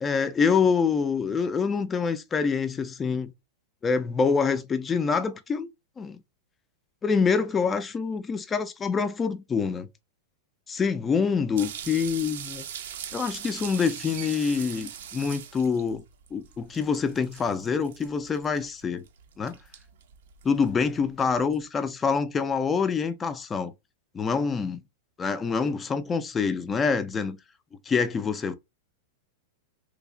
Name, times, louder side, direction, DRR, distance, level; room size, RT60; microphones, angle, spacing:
voice 1, 0.0-3.3 3.8-5.7 6.0-6.2 7.0-9.9 10.7-12.6 13.1-16.0 16.3-19.0 19.4-19.6 20.4-23.7 24.1-24.8 25.2-27.4 27.9-28.5, left 5 dB, 15° left, 0.3 m, -26 dB
stall shower, 11.6-21.6, right 9 dB, 70° right, 0.5 m, -41 dB
3.2 x 2.0 x 3.6 m
supercardioid pair, 155°, 0 cm